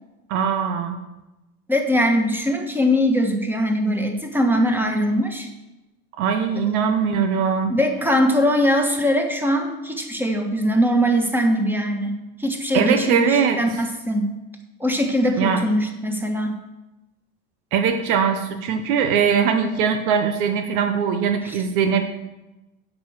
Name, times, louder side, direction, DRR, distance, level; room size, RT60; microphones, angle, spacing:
voice 1, 0.3-1.0 6.2-7.7 12.7-13.8 15.4-15.6 17.7-22.0, right 6 dB, 90° right, 6 dB, 0.9 m, -21 dB
voice 2, 1.7-5.5 7.7-12.1 12.4-14.3 14.8-16.6 21.4-21.6, equal, 5° right, 3 dB, 1.4 m, -21 dB
8.8 x 5.4 x 6.2 m, 1.0 s
supercardioid pair, 110°, 42 cm